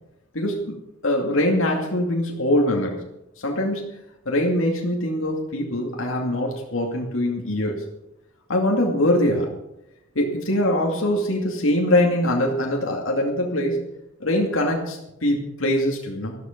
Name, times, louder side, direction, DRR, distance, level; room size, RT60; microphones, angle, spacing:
voice 1, 0.3-0.7 1.0-3.0 3.4-3.9 4.3-7.8 8.5-9.5 10.1-13.8 14.2-16.4, left 1 dB, 85° left, 0 dB, 2.5 m, -23 dB
14.0 x 13.0 x 5.3 m, 0.87 s
head